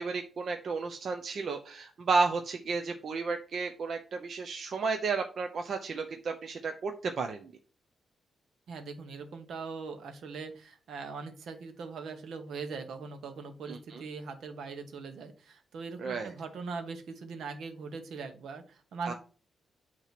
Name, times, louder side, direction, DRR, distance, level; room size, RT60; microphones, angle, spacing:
voice 1, 0.0-7.5 13.7-14.0 16.0-16.3 19.0-19.1, right 4 dB, 50° right, 5 dB, 0.7 m, -32 dB
voice 2, 8.7-19.1, right 4 dB, 70° right, 7 dB, 1.3 m, -41 dB
8.8 x 3.0 x 5.9 m, 0.38 s
wide cardioid pair, 160°, 0 cm